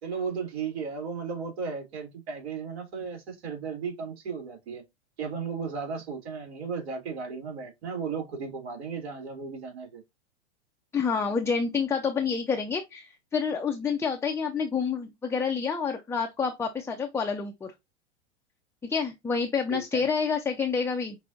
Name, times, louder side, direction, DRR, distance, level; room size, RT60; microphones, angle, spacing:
voice 1, 0.0-4.8 5.2-10.0 19.7-20.0, right 5 dB, 65° right, 2.8 m, -35 dB
voice 2, 10.9-17.7 18.8-21.2, left 5 dB, 10° left, 0.5 m, -28 dB
6.0 x 2.7 x 2.6 m
hypercardioid pair, 105°, 33 cm